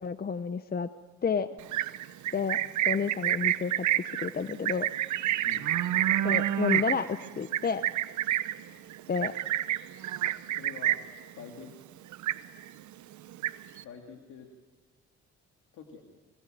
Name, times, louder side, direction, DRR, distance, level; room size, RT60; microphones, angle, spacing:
voice 1, 0.0-0.9 1.2-1.5 2.3-2.6 2.9-4.9 6.2-7.8 9.1-9.3, left 6 dB, 30° left, 12 dB, 0.7 m, -30 dB
Livestock farm animals working animals, 1.6-11.2 11.5-11.9 12.1-12.8 13.1-13.8, right 13 dB, 75° right, 0.8 m, -29 dB
voice 2, 10.5-11.0 11.4-11.8 13.8-14.5 15.7-16.2, left 6 dB, 85° left, 3 dB, 2.4 m, -46 dB
23.0 x 18.0 x 9.1 m, 1.4 s
cardioid pair, 90°, 30 cm